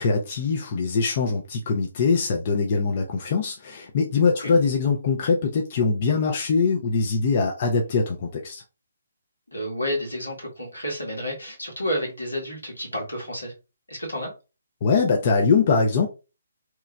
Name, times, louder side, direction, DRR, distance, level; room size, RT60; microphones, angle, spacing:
voice 1, 0.0-8.6 14.8-16.1, left 4 dB, 40° left, 0.6 m, -22 dB
voice 2, 9.5-13.5 13.9-14.3, equal, 85° left, 1.8 m, -30 dB
3.1 x 2.3 x 3.3 m
figure-of-eight pair, 140°, 0 cm